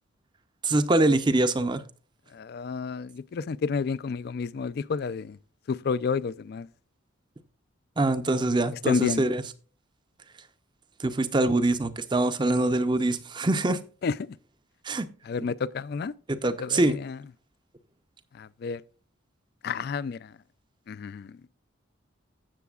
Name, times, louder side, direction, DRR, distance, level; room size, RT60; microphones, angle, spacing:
voice 1, 0.6-1.8 8.0-9.4 11.0-13.8 14.8-15.1 16.3-17.0, right 2 dB, 25° right, 0.5 m, -24 dB
voice 2, 2.3-5.4 5.7-6.7 8.9-9.2 14.0-14.1 15.2-16.1 16.6-17.2 18.3-18.8 19.6-20.3 20.9-21.4, left 5 dB, 50° left, 0.3 m, -30 dB
15.0 x 6.9 x 2.3 m
head